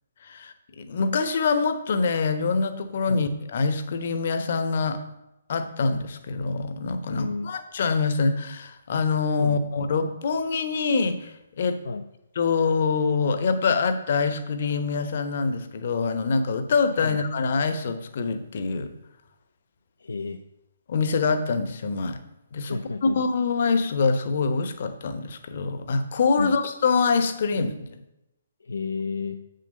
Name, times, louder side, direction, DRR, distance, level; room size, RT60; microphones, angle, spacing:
voice 1, 0.2-5.0 5.5-11.8 12.4-18.9 20.9-22.2 22.5-28.0, left 4 dB, 50° left, 9 dB, 1.0 m, -25 dB
voice 2, 7.1-7.5 9.4-9.7 11.8-12.0 17.0-17.2 20.0-20.4 22.7-23.2 26.4-26.6 28.6-29.4, left 4 dB, 65° left, 7 dB, 0.6 m, -31 dB
8.3 x 6.6 x 5.3 m, 0.91 s
figure-of-eight pair, 130°, 0 cm